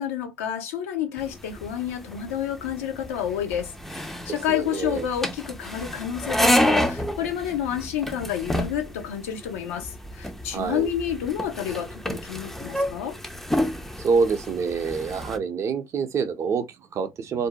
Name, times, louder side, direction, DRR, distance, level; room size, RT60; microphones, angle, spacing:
voice 1, 0.0-13.2, left 10 dB, 85° left, 0.6 m, -30 dB
sound 1, 1.2-15.4, left 1 dB, 5° left, 0.4 m, -29 dB
voice 2, 4.3-5.1 10.5-10.9 14.0-17.5, right 5 dB, 40° right, 0.6 m, -26 dB
2.6 x 2.1 x 2.7 m
supercardioid pair, 90°, 7 cm